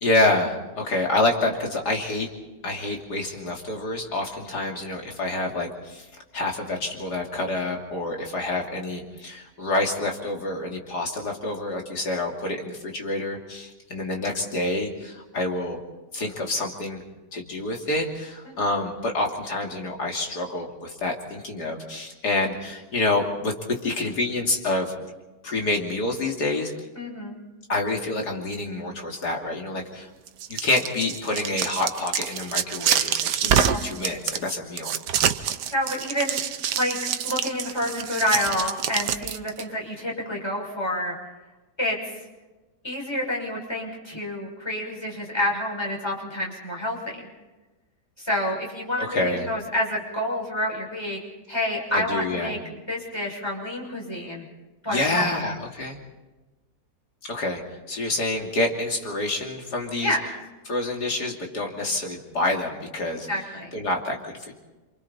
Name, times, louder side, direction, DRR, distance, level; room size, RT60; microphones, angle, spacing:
voice 1, 0.0-2.3 2.6-6.1 6.3-15.8 16.1-17.0 17.3-24.9 25.4-26.7 27.7-30.1 30.5-34.9 49.0-49.5 51.9-52.6 54.9-56.0 57.2-57.6 57.9-60.2 60.7-63.3 63.7-64.5, left 2 dB, 75° left, 1 dB, 3.3 m, -27 dB
voice 2, 26.9-27.4 33.4-33.8 35.7-36.4 36.7-41.2 41.8-42.0 42.8-47.3 48.2-51.2 51.5-52.6 52.9-54.5 54.8-55.3 60.0-60.3 63.1-63.7, left 1 dB, 15° left, -3 dB, 6.6 m, -28 dB
sound 1, 30.3-39.6, right 9 dB, 85° right, 1.5 m, -26 dB
28.5 x 26.5 x 4.3 m, 1.2 s
omnidirectional pair, 1.8 m